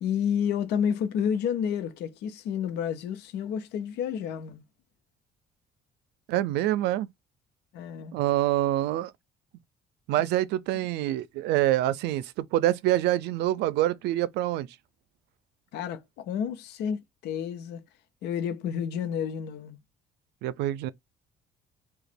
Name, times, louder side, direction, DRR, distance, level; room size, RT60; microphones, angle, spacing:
voice 1, 0.0-4.6 7.7-8.2 15.7-17.8 18.2-19.8, left 8 dB, 80° left, 0.8 m, -30 dB
voice 2, 6.3-7.1 8.1-9.1 10.1-14.7 20.4-20.9, right 14 dB, 85° right, 0.4 m, -26 dB
3.0 x 2.3 x 4.2 m
cardioid pair, 110°, 17 cm